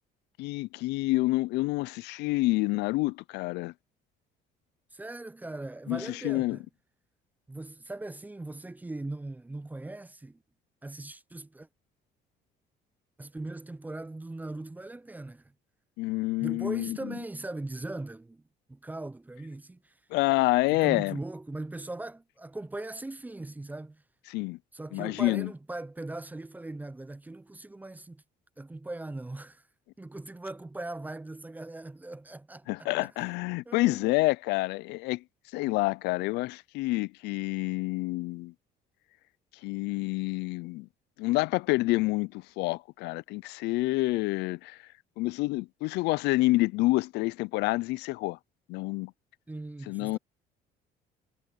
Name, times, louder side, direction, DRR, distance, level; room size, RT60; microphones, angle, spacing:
voice 1, 0.4-3.7 5.9-6.6 16.0-17.0 20.1-21.2 24.3-24.6 24.9-25.5 32.7-35.2 35.5-38.5 39.6-40.9 41.2-44.8 45.2-48.4 48.7-49.1 49.9-50.2, left 21 dB, 85° left, 0.4 m, -28 dB
voice 2, 4.9-6.6 7.5-10.4 10.8-11.7 13.2-15.5 16.4-18.4 18.7-19.9 20.7-24.0 24.7-28.2 28.6-29.6 30.0-33.4 33.7-34.2 49.5-50.2, right 2 dB, 10° right, 0.5 m, -40 dB
cardioid pair, 110°, 17 cm